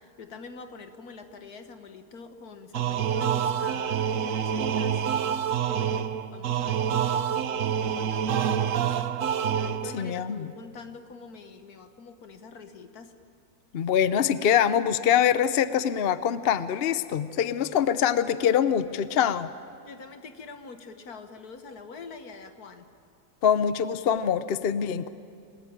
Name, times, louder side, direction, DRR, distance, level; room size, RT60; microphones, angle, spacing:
voice 1, 0.0-9.1 9.5-13.1 19.8-22.9, left 4 dB, 70° left, 8 dB, 1.9 m, -45 dB
sound 1, 2.7-10.1, right 8 dB, 60° right, 1.1 m, -27 dB
voice 2, 9.9-10.5 13.7-19.5 23.4-25.1, left 8 dB, 50° left, 13 dB, 0.7 m, -24 dB
28.0 x 19.5 x 8.9 m, 2.3 s
omnidirectional pair, 1.7 m